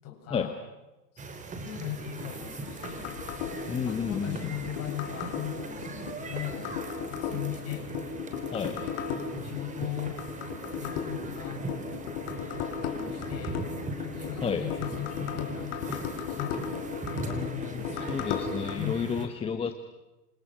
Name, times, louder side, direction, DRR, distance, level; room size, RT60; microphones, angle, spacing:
voice 1, 0.0-0.6 1.1-1.2 1.6-3.1 3.8-6.8 7.0-7.9 8.8-10.2 10.8-11.9 12.4-13.7 14.0-16.7 17.3-18.2 18.8-19.1, left 11 dB, 30° left, 3 dB, 7.2 m, -39 dB
sound 1, 1.2-19.3, right 3 dB, 15° right, 3.4 m, -40 dB
sound 2, 2.0-18.8, left 6 dB, 45° left, 4.5 m, -36 dB
voice 2, 3.7-4.4 8.5-8.8 14.4-14.6 17.3-19.8, left 6 dB, 10° left, 8 dB, 1.2 m, -31 dB
28.0 x 27.0 x 6.3 m, 1.1 s
hypercardioid pair, 125°, 49 cm